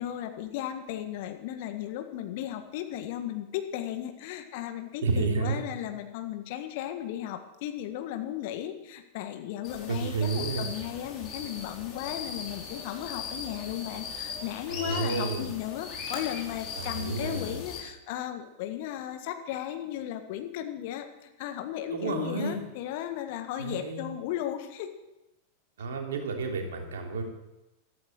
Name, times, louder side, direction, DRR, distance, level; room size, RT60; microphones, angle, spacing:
voice 1, 0.0-24.9, left 11 dB, 50° left, 7 dB, 1.7 m, -35 dB
voice 2, 5.0-5.6 9.9-10.7 14.7-15.5 16.7-17.6 21.9-22.6 23.6-24.1 25.8-27.2, right 4 dB, 60° right, 2 dB, 3.0 m, -30 dB
sound 1, 9.6-17.8, left 5 dB, 35° left, 5.4 m, -39 dB
14.5 x 13.5 x 6.6 m, 0.95 s
figure-of-eight pair, 90°, 0 cm